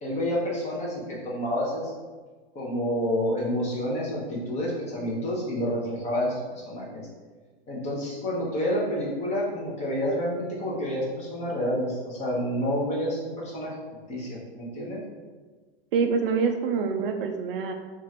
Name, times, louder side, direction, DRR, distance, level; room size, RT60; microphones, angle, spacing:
voice 1, 0.0-1.9 2.5-7.1 7.7-13.7 14.1-15.0, equal, 20° left, -4 dB, 1.0 m, -29 dB
voice 2, 15.9-17.7, right 5 dB, 65° right, 5 dB, 0.5 m, -25 dB
2.9 x 2.5 x 4.2 m, 1.4 s
hypercardioid pair, 125°, 31 cm